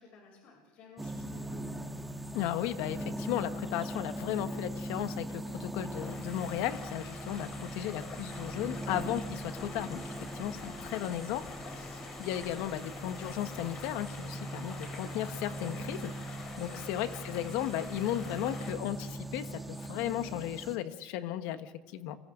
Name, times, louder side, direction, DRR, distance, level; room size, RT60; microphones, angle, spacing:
voice 1, 0.0-1.8 7.4-7.7 16.5-16.9, left 3 dB, 55° left, -1 dB, 7.4 m, -55 dB
sound 1, 1.0-20.8, right 1 dB, 5° right, 1.5 m, -41 dB
voice 2, 2.3-22.2, left 12 dB, 70° left, 9 dB, 1.5 m, -35 dB
sound 2, 5.8-18.7, left 4 dB, 35° left, 4.4 m, -47 dB
30.0 x 24.5 x 3.9 m, 1.2 s
cardioid pair, 140°, 3 cm